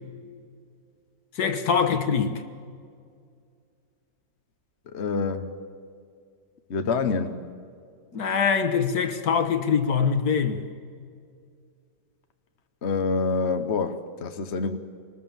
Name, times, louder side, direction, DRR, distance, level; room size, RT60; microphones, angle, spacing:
voice 1, 1.4-2.4 8.1-10.6, left 6 dB, 60° left, 1.8 m, -23 dB
voice 2, 4.9-5.5 6.7-7.4 12.8-14.8, left 4 dB, 45° left, 1.1 m, -26 dB
25.0 x 20.0 x 7.3 m
omnidirectional pair, 1.9 m